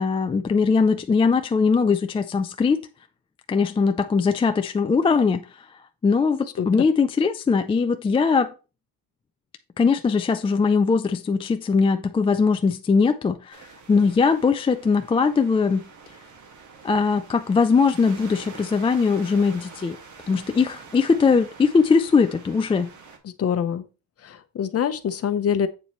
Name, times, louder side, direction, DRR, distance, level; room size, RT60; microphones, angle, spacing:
voice 1, 0.0-2.8 3.5-5.4 6.0-8.5 9.8-13.6 13.9-15.9 16.8-20.0 20.3-22.9, left 5 dB, 15° left, 0.3 m, -20 dB
sound 1, 13.5-23.2, right 5 dB, 50° right, 1.9 m, -46 dB
voice 2, 23.4-23.8 24.2-25.7, left 8 dB, 40° left, 0.9 m, -24 dB
8.1 x 7.0 x 3.1 m
cardioid pair, 135°, 37 cm